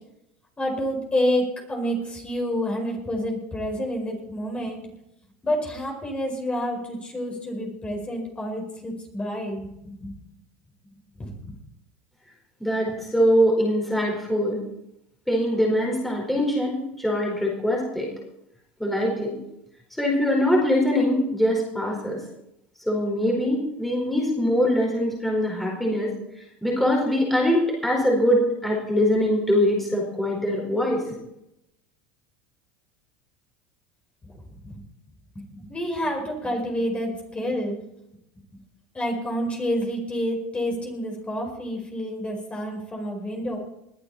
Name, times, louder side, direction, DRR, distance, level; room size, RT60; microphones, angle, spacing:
voice 1, 0.6-4.9 5.4-10.1 11.2-11.5 34.2-34.3 34.6-34.8 35.5-37.8 38.9-43.6, equal, 20° left, 1 dB, 5.0 m, -28 dB
voice 2, 12.6-14.6 15.3-18.1 18.8-19.4 20.0-22.2 22.8-26.1 26.6-31.0, equal, 5° left, -2 dB, 4.7 m, -23 dB
20.5 x 10.0 x 4.3 m, 0.83 s
hypercardioid pair, 90°, 6 cm